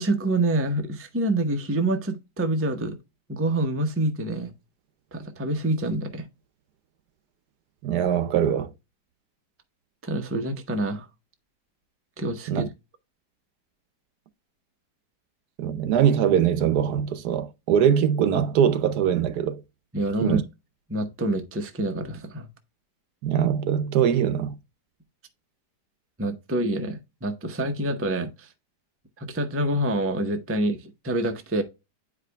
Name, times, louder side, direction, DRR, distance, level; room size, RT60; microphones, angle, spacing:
voice 1, 0.0-3.0 3.3-4.5 5.1-6.3 10.0-11.1 12.2-12.7 19.9-20.4 20.9-22.5 26.2-28.5 29.2-31.6, right 1 dB, 15° right, 0.5 m, -27 dB
voice 2, 7.8-8.7 12.5-12.7 15.6-19.6 20.2-20.4 23.2-24.5, right 9 dB, 75° right, 1.3 m, -22 dB
9.6 x 4.9 x 2.2 m
omnidirectional pair, 1.8 m